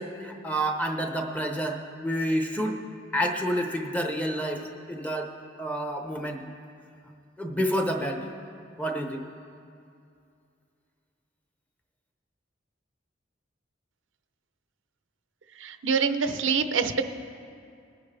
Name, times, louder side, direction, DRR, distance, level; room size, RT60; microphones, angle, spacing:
voice 1, 0.0-2.8 3.1-4.6 4.9-5.3 5.6-6.5 7.4-8.3 8.8-9.2, equal, 10° left, 3 dB, 0.8 m, -29 dB
voice 2, 15.6-17.0, right 5 dB, 80° right, 8 dB, 0.7 m, -25 dB
20.5 x 9.9 x 3.4 m, 2.5 s
head